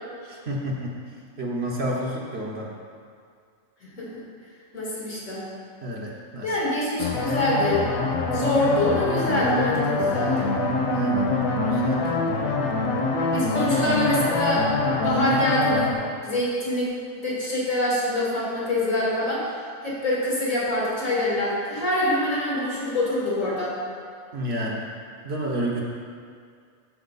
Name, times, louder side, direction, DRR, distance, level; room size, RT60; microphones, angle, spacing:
voice 1, 0.2-1.0 1.4-2.7 5.8-6.5 10.8-11.3 11.7-12.0 24.3-24.8 25.2-25.8, right 1 dB, 50° right, -3 dB, 1.3 m, -30 dB
voice 2, 3.8-4.2 4.7-5.4 6.4-7.8 8.3-10.5 13.3-14.7 15.0-15.9 16.2-16.9 17.1-19.4 19.8-23.8, left 1 dB, 70° left, -6 dB, 2.8 m, -25 dB
sound 1, 7.0-15.9, left 2 dB, 85° left, 1.4 m, -24 dB
12.5 x 4.9 x 4.1 m, 2.2 s
omnidirectional pair, 1.5 m